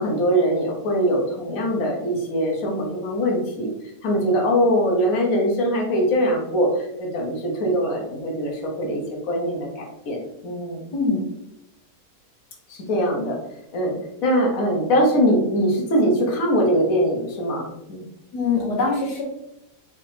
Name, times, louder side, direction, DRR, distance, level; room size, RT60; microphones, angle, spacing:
voice 1, 0.0-3.7 4.0-10.8 12.7-13.4 13.7-14.0 14.2-18.0, equal, 60° left, -1 dB, 1.4 m, -22 dB
voice 2, 18.3-19.2, left 4 dB, 90° left, 0 dB, 1.6 m, -23 dB
5.2 x 3.5 x 2.8 m, 0.84 s
omnidirectional pair, 1.8 m